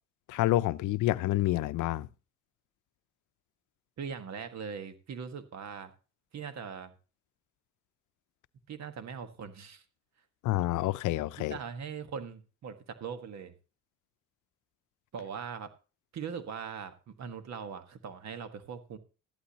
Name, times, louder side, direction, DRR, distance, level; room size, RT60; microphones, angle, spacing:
voice 1, 0.3-2.1 10.4-11.6, left 16 dB, 80° left, 0.6 m, -28 dB
voice 2, 4.0-5.9 6.3-6.9 8.7-9.8 11.4-13.5 15.1-15.7 16.1-19.0, right 6 dB, 65° right, 1.5 m, -41 dB
13.5 x 11.5 x 2.9 m
cardioid pair, 90°, 30 cm